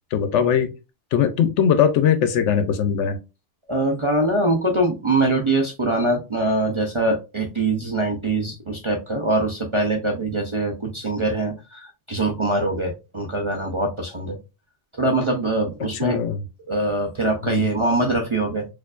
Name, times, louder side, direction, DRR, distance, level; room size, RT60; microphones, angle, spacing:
voice 1, 0.1-0.7 1.1-3.2 15.9-16.4 17.4-17.7, left 8 dB, 80° left, 9 dB, 0.9 m, -20 dB
voice 2, 3.7-14.4 15.0-16.2 16.7-18.7, right 2 dB, 40° right, 0 dB, 0.4 m, -23 dB
4.3 x 2.6 x 2.4 m, 0.27 s
omnidirectional pair, 1.2 m